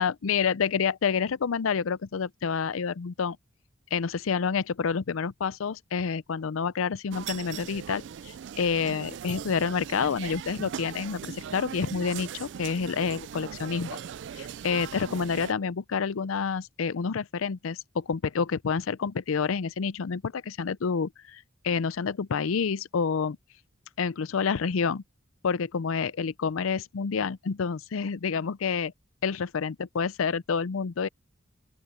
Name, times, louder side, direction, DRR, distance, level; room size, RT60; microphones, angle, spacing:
voice 1, 0.0-3.4 3.9-14.0 14.3-23.4 24.0-25.0 25.4-28.9 29.2-31.1, left 6 dB, 90° left, 0.5 m, -28 dB
sound 1, 7.1-15.5, right 8 dB, 60° right, 0.3 m, -39 dB
open air
head